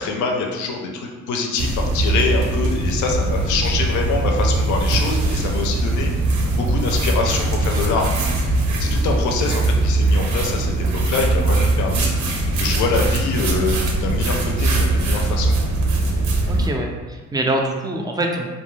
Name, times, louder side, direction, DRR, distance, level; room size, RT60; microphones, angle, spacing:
voice 1, 0.0-6.1 6.5-8.3 8.8-10.7 11.1-15.6, left 4 dB, 75° left, 1 dB, 0.5 m, -25 dB
sound 1, 1.6-16.7, right 2 dB, 70° right, 0.5 m, -20 dB
voice 2, 16.4-18.5, right 1 dB, 15° right, 1 dB, 0.3 m, -24 dB
2.3 x 2.2 x 3.1 m, 1.3 s
cardioid pair, 90°, 30 cm